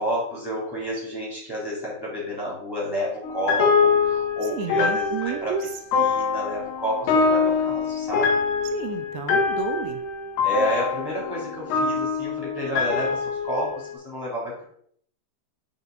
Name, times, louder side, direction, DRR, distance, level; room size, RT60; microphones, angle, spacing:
voice 1, 0.0-5.5 6.0-8.3 10.4-14.6, equal, 5° left, -6 dB, 2.2 m, -30 dB
sound 1, 3.2-13.9, left 5 dB, 85° left, 1.7 m, -24 dB
voice 2, 4.5-5.7 8.6-10.0, right 7 dB, 80° right, 7 dB, 2.7 m, -31 dB
9.2 x 4.5 x 3.9 m, 0.64 s
omnidirectional pair, 5.3 m